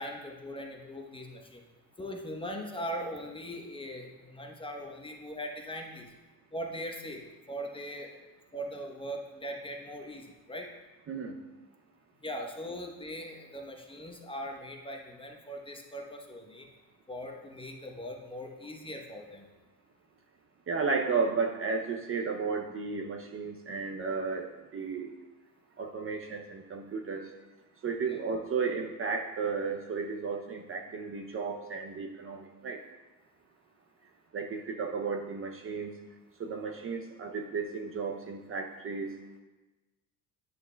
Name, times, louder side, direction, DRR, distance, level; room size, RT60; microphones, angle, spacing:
voice 1, 0.0-1.6 2.0-6.1 6.5-7.2 7.5-8.2 8.5-10.7 12.2-16.7 17.1-19.5 28.1-28.2, equal, 15° left, 1 dB, 0.9 m, -40 dB
voice 2, 11.1-11.4 20.7-25.1 25.8-27.3 27.8-32.8 34.3-35.9 36.4-39.1, right 5 dB, 35° right, 2 dB, 0.6 m, -33 dB
9.3 x 6.2 x 2.2 m, 1.1 s
cardioid pair, 100°, 38 cm